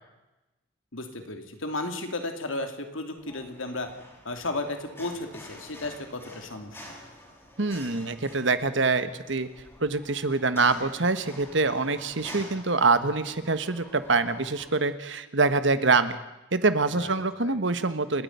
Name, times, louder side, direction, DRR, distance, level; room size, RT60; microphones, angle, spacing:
voice 1, 0.9-3.9 4.2-6.8 16.9-17.6, left 2 dB, 80° left, 6 dB, 2.7 m, -34 dB
sound 1, 3.2-14.7, equal, 10° left, 5.7 m, -48 dB
voice 2, 7.6-9.5 9.8-16.2 16.5-18.2, right 3 dB, 65° right, 12 dB, 1.3 m, -25 dB
29.0 x 9.9 x 9.4 m, 1.0 s
head